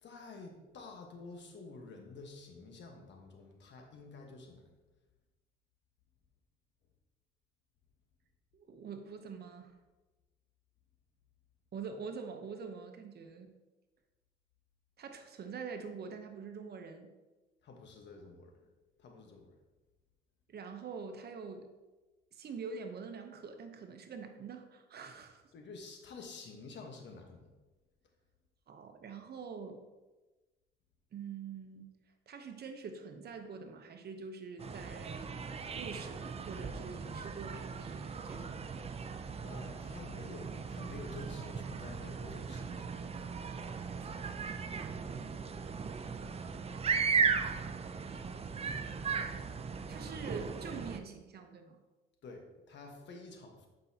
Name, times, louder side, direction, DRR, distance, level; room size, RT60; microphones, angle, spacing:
voice 1, 0.0-4.7 17.6-18.5 19.0-19.5 25.5-27.5 39.4-42.9 52.2-53.7, left 3 dB, 65° left, 3 dB, 1.2 m, -50 dB
voice 2, 8.5-9.7 11.7-13.5 15.0-17.1 20.5-21.7 22.3-25.4 28.7-29.8 31.1-31.9 32.3-38.7 44.0-44.2 47.2-48.2 49.9-51.8, right 5 dB, 55° right, 6 dB, 0.8 m, -45 dB
sound 1, 34.6-51.0, right 5 dB, 30° right, 0.5 m, -37 dB
7.8 x 5.3 x 2.8 m, 1.2 s
cardioid pair, 90°, 20 cm